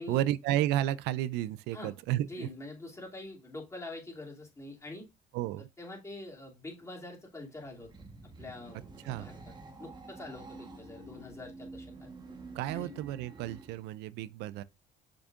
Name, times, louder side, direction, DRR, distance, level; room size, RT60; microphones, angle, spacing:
voice 1, 0.0-2.5 5.3-5.7 9.0-9.3 12.5-14.6, right 13 dB, 90° right, 0.4 m, -32 dB
voice 2, 2.2-5.1 5.8-7.9 8.4-8.8 9.0-9.4 9.8-12.1 12.7-12.9, left 2 dB, 15° left, 2.7 m, -45 dB
sound 1, 7.6-13.9, right 3 dB, 25° right, 1.2 m, -49 dB
6.3 x 6.1 x 2.5 m
cardioid pair, 110°, 17 cm